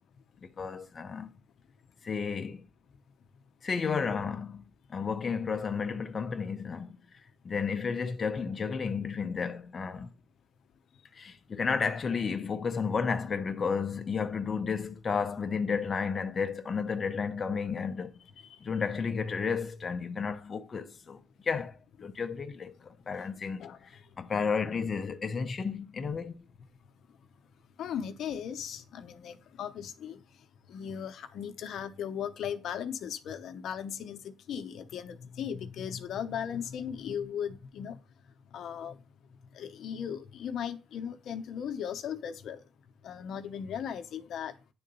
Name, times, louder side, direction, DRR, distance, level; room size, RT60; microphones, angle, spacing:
voice 1, 0.4-1.3 2.0-2.6 3.6-4.6 4.9-7.0 7.4-10.1 11.1-18.1 18.6-23.7 24.2-26.4, left 5 dB, 40° left, 0.6 m, -32 dB
voice 2, 27.8-30.2 30.7-34.2 34.5-38.0 38.5-38.9 39.6-42.6 43.0-44.5, left 8 dB, 70° left, 0.8 m, -37 dB
9.6 x 3.8 x 5.4 m
cardioid pair, 90°, 0 cm